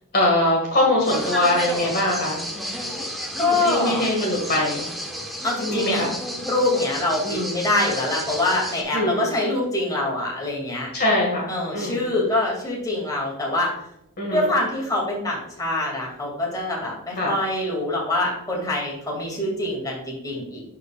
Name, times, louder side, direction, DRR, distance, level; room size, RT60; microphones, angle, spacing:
voice 1, 0.1-2.4 3.6-4.8 5.7-6.1 7.2-7.6 8.9-9.2 10.9-12.1 14.2-14.5 17.2-17.3, left 1 dB, 45° left, -2 dB, 1.9 m, -22 dB
sound 1, 1.0-8.8, equal, ahead, 1.0 m, -32 dB
voice 2, 3.4-4.1 5.4-6.1 6.5-10.9 11.5-13.7 14.3-20.6, left 2 dB, 15° left, -3 dB, 2.5 m, -24 dB
12.0 x 4.6 x 2.4 m, 0.78 s
head